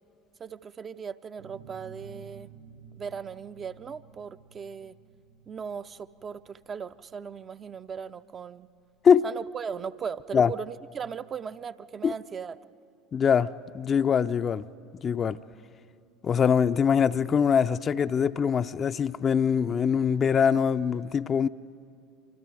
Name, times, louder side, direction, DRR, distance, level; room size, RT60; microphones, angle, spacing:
voice 1, 0.4-2.5 3.0-5.0 5.5-8.7 9.2-12.6, right 6 dB, 35° right, 0.6 m, -38 dB
sound 1, 1.4-10.8, right 7 dB, 75° right, 6.5 m, -53 dB
voice 2, 13.1-13.5 13.7-14.6 15.0-15.4 16.2-21.5, left 7 dB, 35° left, 0.5 m, -23 dB
27.0 x 25.5 x 4.9 m
hypercardioid pair, 70°, 0 cm